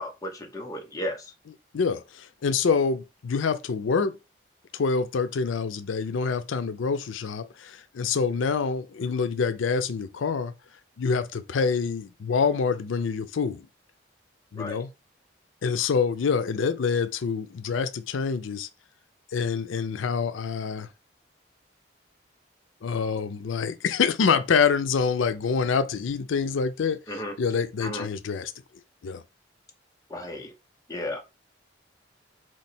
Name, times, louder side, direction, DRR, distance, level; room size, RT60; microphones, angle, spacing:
voice 1, 0.0-1.3 14.6-14.8 27.1-27.3 27.8-28.1 30.1-30.5 30.9-31.2, left 1 dB, 20° left, 0.8 m, -34 dB
voice 2, 1.7-4.1 4.7-10.5 11.0-13.7 14.5-14.9 15.6-18.7 19.3-20.9 22.8-27.0 27.4-28.5 29.0-29.2, left 5 dB, 85° left, 0.4 m, -26 dB
3.8 x 3.2 x 4.2 m
head